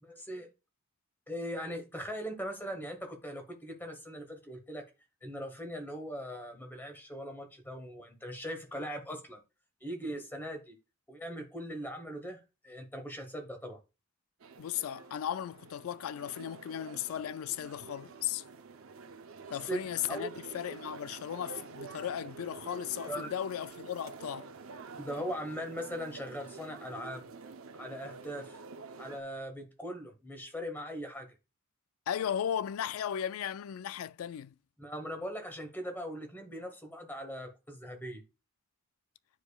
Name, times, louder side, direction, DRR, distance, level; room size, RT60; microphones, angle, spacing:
voice 1, 0.0-0.5 1.3-4.8 5.2-9.4 9.8-10.7 11.1-13.8 19.7-19.8 20.1-20.3 23.1-23.3 25.0-27.3 27.7-28.6 29.0-31.3 34.8-38.2, equal, 10° left, 1.1 m, -40 dB
sound 1, 14.4-29.2, right 4 dB, 70° right, 0.6 m, -48 dB
voice 2, 14.6-18.4 19.5-24.5 32.1-34.6, left 10 dB, 75° left, 0.3 m, -36 dB
9.1 x 4.9 x 2.3 m
head